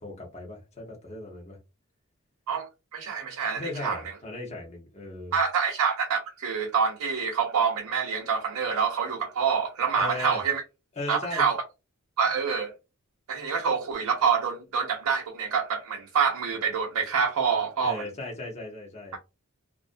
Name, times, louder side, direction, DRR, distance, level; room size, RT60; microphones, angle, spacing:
voice 1, 0.0-1.6 3.5-5.4 9.9-10.4 11.0-11.5 17.8-19.2, left 2 dB, 30° left, 0.8 m, -37 dB
voice 2, 2.5-4.0 5.3-10.6 11.1-11.6 12.2-12.7 13.3-18.1, right 6 dB, 90° right, 0.5 m, -26 dB
2.4 x 2.1 x 2.5 m
head